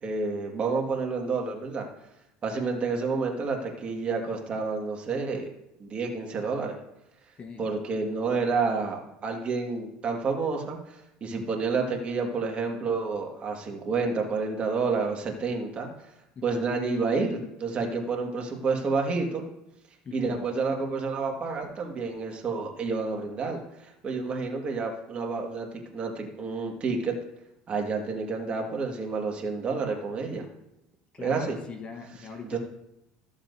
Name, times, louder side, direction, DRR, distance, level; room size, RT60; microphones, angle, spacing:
voice 1, 0.0-1.9 2.4-5.5 5.8-6.8 7.6-10.8 11.2-15.9 16.4-19.4 20.1-25.7 25.9-27.1 27.7-30.4 31.2-31.6 32.5-32.6, right 4 dB, 35° right, 2 dB, 1.8 m, -29 dB
voice 2, 16.3-16.8 20.0-20.5 31.1-32.6, left 5 dB, 35° left, 6 dB, 1.1 m, -41 dB
14.0 x 7.3 x 2.7 m, 0.85 s
supercardioid pair, 105°, 3 cm